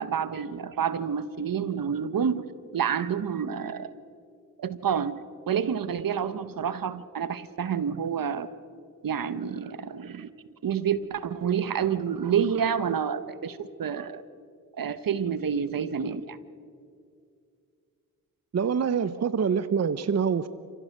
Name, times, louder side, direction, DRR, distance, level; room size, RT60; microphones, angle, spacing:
voice 1, 0.0-2.5 2.7-3.9 4.6-8.5 9.0-10.3 10.6-14.2 14.7-16.4, right 7 dB, 70° right, 14 dB, 1.1 m, -28 dB
voice 2, 18.5-20.5, right 6 dB, 45° right, 14 dB, 0.7 m, -25 dB
29.0 x 16.0 x 6.6 m, 2.3 s
cardioid pair, 65°, 36 cm